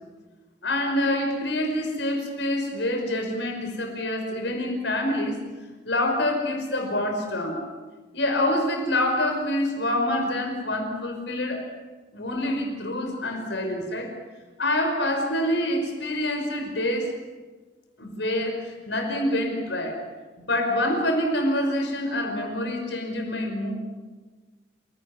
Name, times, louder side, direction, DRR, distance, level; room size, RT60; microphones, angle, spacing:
voice 1, 0.6-5.4 5.8-7.6 8.1-11.7 12.1-14.1 14.6-17.2 18.0-20.0 20.4-23.7, left 1 dB, 70° left, 4 dB, 5.4 m, -26 dB
28.5 x 18.5 x 9.8 m, 1.3 s
head